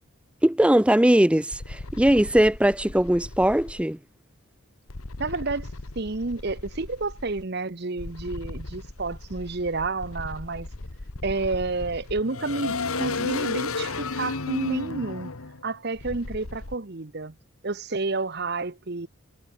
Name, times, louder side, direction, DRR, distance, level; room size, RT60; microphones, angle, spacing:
voice 1, 0.4-4.0, right 1 dB, 5° right, 0.4 m, -20 dB
sound 1, 1.5-3.8 4.9-7.4 8.0-16.8, left 3 dB, 80° left, 1.6 m, -35 dB
voice 2, 5.2-10.7 11.2-15.3 15.6-17.3 17.6-19.1, right 3 dB, 50° right, 1.0 m, -30 dB
head